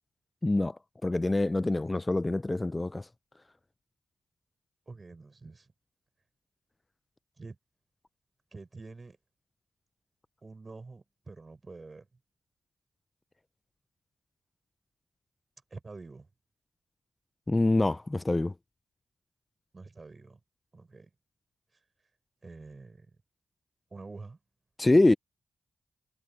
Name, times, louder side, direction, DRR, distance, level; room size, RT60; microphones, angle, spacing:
voice 1, 0.4-0.8 1.0-3.0 17.5-18.5 24.8-25.1, left 2 dB, 25° left, 0.5 m, -25 dB
voice 2, 4.9-5.7 7.4-7.6 8.5-9.2 10.4-12.1 15.7-16.3 19.7-20.4 20.7-21.1 21.7-21.8 22.4-23.2 23.9-24.4, right 3 dB, 40° right, 6.1 m, -47 dB
supercardioid pair, 50°, 0 cm